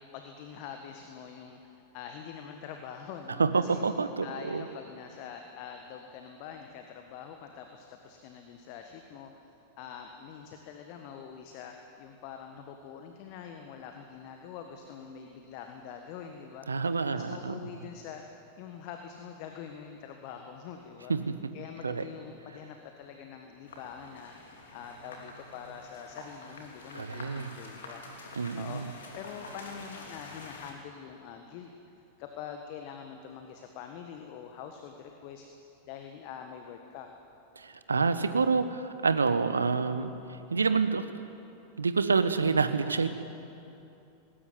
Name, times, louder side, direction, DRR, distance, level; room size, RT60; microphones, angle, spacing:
voice 1, 0.0-3.8 4.2-16.7 17.1-18.2 18.6-21.1 21.5-24.3 24.7-28.0 28.5-35.5 35.9-37.1, left 7 dB, 45° left, 4 dB, 1.6 m, -45 dB
voice 2, 3.4-4.6 16.7-17.5 21.1-21.3 21.8-22.0 26.9-27.5 28.4-28.9 37.6-40.1 40.5-41.0 41.8-43.1, right 4 dB, 75° right, 11 dB, 1.1 m, -27 dB
sound 1, 23.6-30.7, left 2 dB, 65° left, 3.0 m, -47 dB
20.0 x 17.0 x 9.5 m, 2.8 s
figure-of-eight pair, 90°, 0 cm